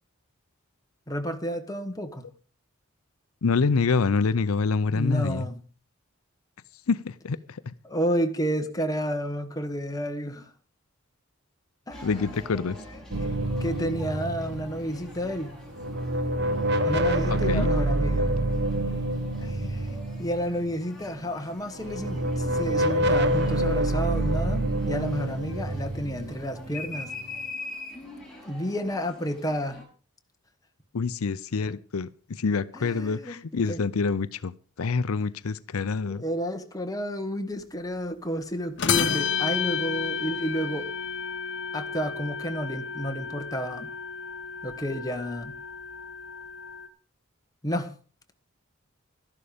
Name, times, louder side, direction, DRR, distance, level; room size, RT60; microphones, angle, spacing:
voice 1, 1.1-2.3 4.9-5.6 7.8-10.5 11.9-12.3 13.1-13.3 13.6-15.6 16.8-18.3 19.4-27.1 28.4-29.8 32.7-33.4 33.7-33.9 36.1-40.9 41.7-43.9 44.6-45.6 47.6-47.9, equal, 15° left, 1.4 m, -31 dB
voice 2, 3.4-5.5 6.9-7.7 12.0-12.8 17.5-17.7 30.9-36.2, left 4 dB, 90° left, 0.6 m, -26 dB
sound 1, 11.9-29.8, left 2 dB, ahead, 6.9 m, -44 dB
sound 2, 13.1-15.3 15.7-20.9 21.8-27.2, right 1 dB, 55° right, 1.1 m, -27 dB
sound 3, 38.8-46.9, left 7 dB, 55° left, 0.9 m, -31 dB
12.5 x 11.5 x 5.1 m
head